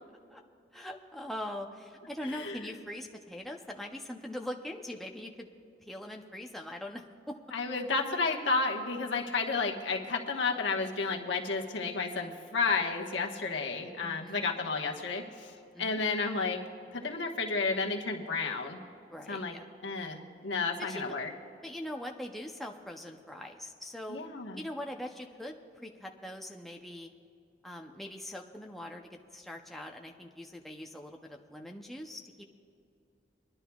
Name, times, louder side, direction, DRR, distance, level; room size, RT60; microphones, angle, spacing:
voice 1, 0.7-5.5 5.8-7.4 14.0-14.5 15.7-16.0 19.1-19.7 20.8-21.1 21.6-24.2 24.6-27.1 27.6-32.4, left 1 dB, ahead, 1 dB, 0.5 m, -42 dB
voice 2, 2.2-2.7 7.5-15.5 15.8-16.6 16.9-18.8 19.3-19.5 19.8-21.3 24.1-24.6, left 4 dB, 90° left, 0 dB, 1.2 m, -32 dB
24.5 x 11.0 x 2.3 m, 2.5 s
head